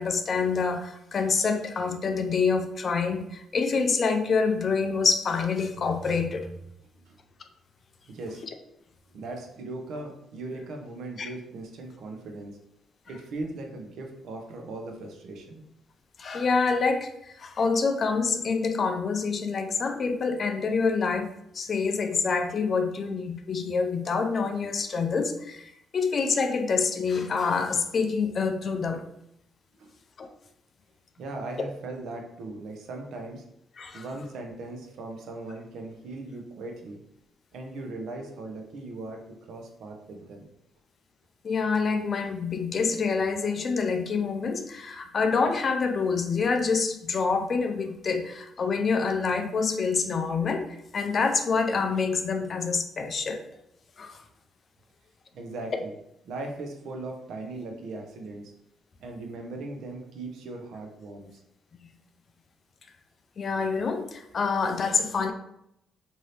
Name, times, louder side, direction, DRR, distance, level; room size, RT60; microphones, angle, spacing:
voice 1, 0.0-6.5 11.2-11.3 16.2-29.1 30.2-30.3 33.8-34.0 41.4-53.4 54.0-54.2 63.4-65.3, left 4 dB, 45° left, 6 dB, 0.4 m, -26 dB
voice 2, 8.1-8.4 9.1-12.6 13.1-15.7 29.8-30.0 31.2-33.4 33.9-37.0 37.5-40.5 55.3-55.9 56.3-58.5 59.0-61.4, right 2 dB, 75° right, 3 dB, 0.6 m, -38 dB
2.7 x 2.6 x 3.2 m, 0.79 s
cardioid pair, 90°, 0 cm